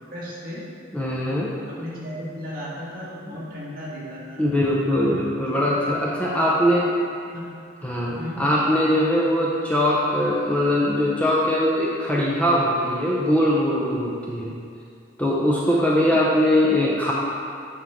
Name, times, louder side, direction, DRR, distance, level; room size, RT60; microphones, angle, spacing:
voice 1, 0.1-0.7 1.7-4.5 5.4-6.8 7.3-7.5 8.2-8.4 15.6-16.2, equal, 45° right, -7 dB, 1.7 m, -36 dB
voice 2, 0.9-1.5 3.3-3.4 4.4-6.9 7.8-14.5 15.2-17.1, equal, 5° left, -5 dB, 0.6 m, -21 dB
9.0 x 5.6 x 3.6 m, 2.4 s
head